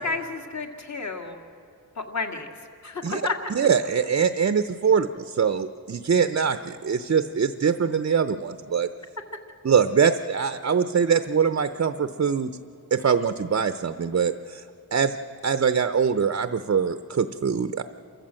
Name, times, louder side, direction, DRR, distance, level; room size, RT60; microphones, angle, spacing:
voice 1, 0.0-1.4 2.0-2.5 2.8-3.3, left 4 dB, 45° left, 4 dB, 2.1 m, -31 dB
voice 2, 3.6-8.9 9.6-12.5 12.9-14.6 14.9-15.2 15.4-17.8, right 6 dB, 40° right, 10 dB, 0.7 m, -23 dB
28.0 x 14.0 x 7.6 m, 2.5 s
cardioid pair, 80°, 39 cm